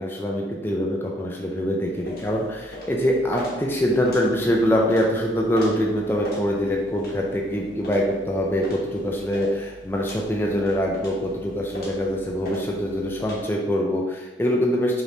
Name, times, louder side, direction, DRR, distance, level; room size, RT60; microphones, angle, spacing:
voice 1, 0.0-15.0, equal, 10° left, -1 dB, 0.4 m, -24 dB
sound 1, 2.0-13.4, left 1 dB, 55° left, 1.0 m, -41 dB
5.0 x 3.1 x 2.7 m, 1.1 s
head